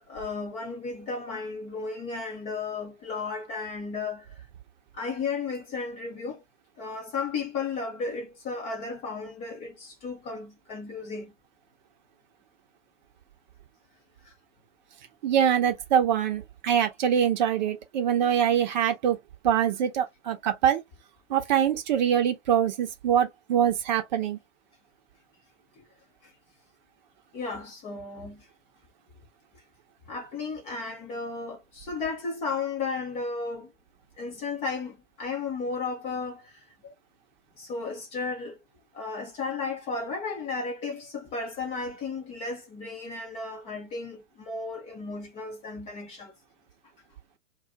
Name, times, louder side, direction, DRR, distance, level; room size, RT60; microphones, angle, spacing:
voice 1, 0.0-4.3 4.9-6.4 6.8-11.3 14.3-14.4 27.3-28.5 30.1-33.7 34.2-36.5 36.8-36.9 37.6-38.6 38.9-46.3, left 4 dB, 15° left, 0.7 m, -34 dB
voice 2, 15.2-19.2 19.4-20.8 21.3-24.4, right 9 dB, 35° right, 0.8 m, -24 dB
2.5 x 2.2 x 3.7 m
figure-of-eight pair, 115°, 38 cm